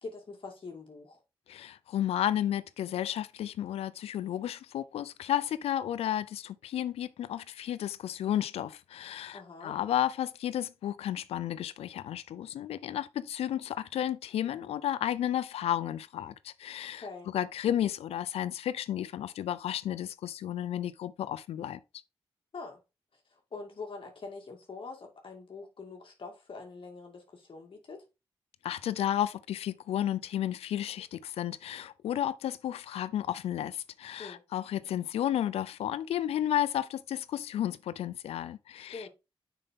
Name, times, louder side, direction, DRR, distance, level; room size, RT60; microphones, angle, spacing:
voice 1, 0.0-1.2 9.3-9.8 16.9-17.3 22.5-22.8 23.3-28.0 34.2-34.4 38.9-39.1, left 4 dB, 60° left, 2.2 m, -44 dB
voice 2, 1.5-17.0 17.3-21.8 28.6-39.1, left 11 dB, 90° left, 0.5 m, -32 dB
6.7 x 6.0 x 3.7 m
cardioid pair, 50°, 10 cm